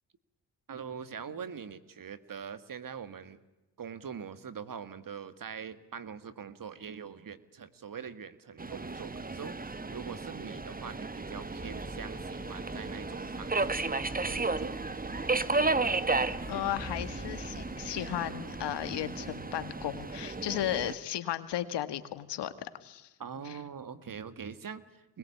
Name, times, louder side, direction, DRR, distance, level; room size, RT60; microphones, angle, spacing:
voice 1, 0.7-3.4 3.8-9.5 9.9-13.9 14.2-14.7 23.2-25.2, right 7 dB, 50° right, 12 dB, 2.0 m, -43 dB
Subway metro underground, 8.6-21.0, right 3 dB, 20° right, 1.4 m, -34 dB
sound 1, 11.4-17.9, left 2 dB, 10° left, 6.3 m, -48 dB
voice 2, 16.5-23.1 23.5-23.6, left 12 dB, 80° left, 12 dB, 1.8 m, -35 dB
25.5 x 21.0 x 8.6 m, 1.1 s
supercardioid pair, 60°, 41 cm